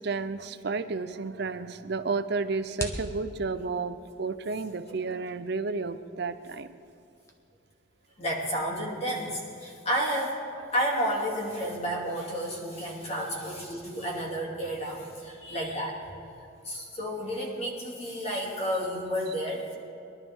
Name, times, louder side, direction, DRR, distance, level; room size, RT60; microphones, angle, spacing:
voice 1, 0.0-6.7, right 4 dB, 55° right, 11 dB, 0.6 m, -32 dB
sound 1, 1.1-7.3, left 1 dB, 15° left, 1.0 m, -45 dB
voice 2, 8.2-10.4 10.7-16.1 16.6-19.8, equal, 30° left, -2 dB, 2.6 m, -31 dB
22.5 x 11.5 x 3.6 m, 2.6 s
head